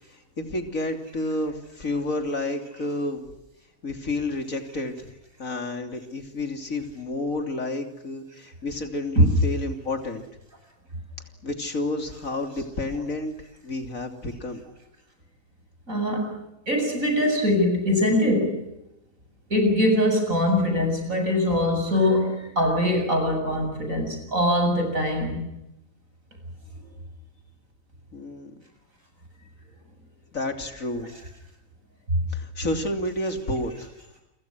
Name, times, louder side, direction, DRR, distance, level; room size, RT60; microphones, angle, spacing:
voice 1, 0.4-3.3 3.8-4.9 5.4-10.2 11.4-13.3 13.6-14.6 28.1-28.5 30.3-31.1 32.3-33.7, left 2 dB, 80° left, 6 dB, 3.6 m, -30 dB
voice 2, 15.9-16.4 16.7-18.7 19.5-25.5 32.1-32.2, left 1 dB, 75° right, 5 dB, 7.9 m, -22 dB
29.0 x 25.0 x 6.3 m, 0.88 s
omnidirectional pair, 1.4 m